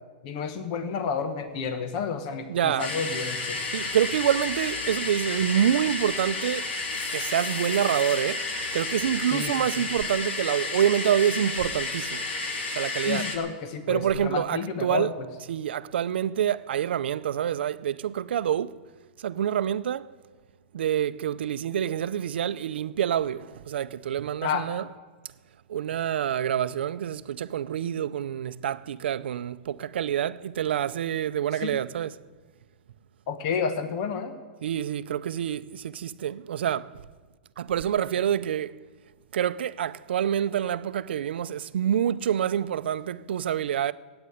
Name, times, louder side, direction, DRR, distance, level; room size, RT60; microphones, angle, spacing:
voice 1, 0.2-3.6 9.3-9.5 13.0-15.1 24.4-24.7 31.6-31.7 33.3-34.4, left 6 dB, 35° left, 1.1 m, -30 dB
voice 2, 2.5-2.9 3.7-6.7 7.1-8.5 8.7-12.2 12.7-13.3 13.9-15.1 15.5-18.8 19.2-20.1 20.7-24.9 25.7-32.2 34.6-36.9 37.6-38.7 39.3-43.9, right 10 dB, 70° right, 0.6 m, -27 dB
sound 1, 2.8-13.4, left 3 dB, 80° left, 3.1 m, -31 dB
16.0 x 8.9 x 9.5 m
supercardioid pair, 175°, 6 cm